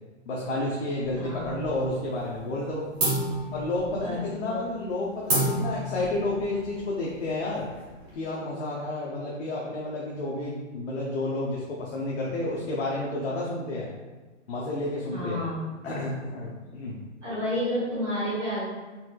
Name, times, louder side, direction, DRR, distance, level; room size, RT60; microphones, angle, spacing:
voice 1, 0.3-2.8 3.5-7.6 8.1-13.9 14.5-15.4 15.8-17.0, left 2 dB, 65° left, -5 dB, 0.7 m, -31 dB
sound 1, 1.0-1.9 2.2-2.6 3.0-8.1, right 1 dB, 30° right, 1.0 m, -31 dB
voice 2, 1.2-1.6 3.9-4.6 15.1-15.6 16.6-16.7 17.2-18.6, equal, 10° right, -14 dB, 1.0 m, -31 dB
4.2 x 2.3 x 2.2 m, 1.2 s
hypercardioid pair, 165°, 38 cm